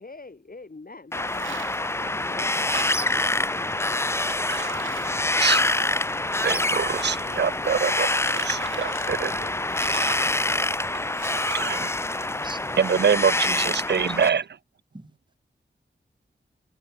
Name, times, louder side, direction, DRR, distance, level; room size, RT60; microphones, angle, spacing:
voice 1, 0.0-3.0, left 3 dB, 45° left, 3.7 m, -44 dB
Wind, 1.1-14.3, left 2 dB, 15° left, 0.5 m, -26 dB
sound 1, 1.3-1.9 2.3-3.4 4.0-4.1 4.4-6.2 6.5-7.4 8.1-9.1 9.7-10.3 11.2-11.8, right 6 dB, 80° right, 0.8 m, -39 dB
sound 2, 3.5-8.2 8.8-11.1, left 5 dB, 85° left, 7.1 m, -51 dB
voice 2, 6.4-9.5 11.5-11.9 12.8-14.4, right 7 dB, 60° right, 0.5 m, -25 dB
voice 3, 10.5-11.0 12.3-13.1 14.0-14.4 14.9-15.1, right 1 dB, 25° right, 3.9 m, -44 dB
wide cardioid pair, 70°, 20 cm